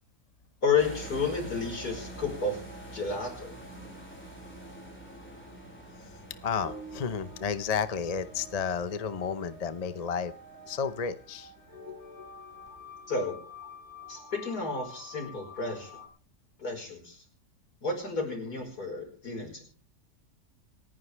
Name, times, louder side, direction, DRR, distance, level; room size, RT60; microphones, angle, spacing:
voice 1, 0.6-2.6 2.9-3.5 13.1-13.4 14.1-15.9 16.6-17.2 17.8-19.6, left 4 dB, 70° left, 2 dB, 5.7 m, -31 dB
sound 1, 0.8-12.9, right 1 dB, 5° left, 4.5 m, -47 dB
sound 2, 3.0-16.1, left 2 dB, 45° right, 4.9 m, -49 dB
voice 2, 6.4-10.3 10.7-11.5, left 6 dB, 35° left, 12 dB, 0.6 m, -32 dB
28.0 x 10.5 x 3.4 m, 0.42 s
omnidirectional pair, 1.7 m